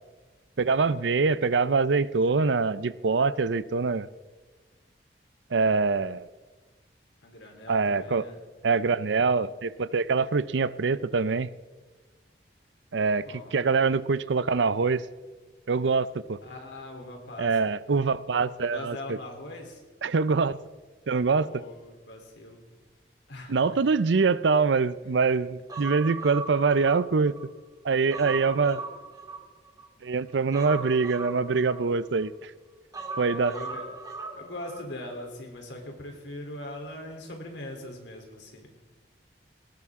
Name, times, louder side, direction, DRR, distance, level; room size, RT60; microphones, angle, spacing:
voice 1, 0.6-4.1 5.5-6.3 7.7-8.2 8.6-11.5 12.9-15.0 15.7-16.4 17.4-19.2 20.0-20.6 21.1-21.6 23.5-27.4 27.8-28.8 30.0-32.5 33.2-33.5, right 4 dB, 90° right, 17 dB, 0.6 m, -24 dB
voice 2, 7.2-8.4 13.3-13.5 16.4-17.5 18.6-19.8 21.4-22.6 23.3-23.8 28.2-28.7 33.2-33.9 34.4-38.7, left 1 dB, 90° left, 2 dB, 3.5 m, -41 dB
Human voice, 25.7-27.5 27.9-29.9 30.5-32.3 32.9-34.9 35.2-35.3, right 3 dB, 20° right, 2.1 m, -39 dB
19.0 x 18.0 x 3.7 m, 1.3 s
head